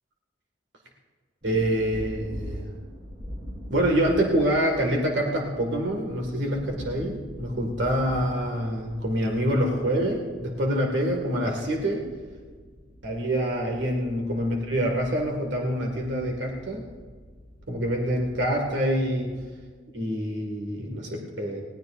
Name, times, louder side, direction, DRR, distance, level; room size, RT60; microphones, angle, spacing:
sound 1, 1.4-19.7, equal, 40° right, 3.8 m, -43 dB
voice 1, 1.4-2.7 3.7-12.0 13.0-16.9 17.7-19.3 19.9-21.6, equal, 75° right, 0 dB, 1.9 m, -26 dB
20.5 x 16.5 x 2.5 m, 1.5 s
head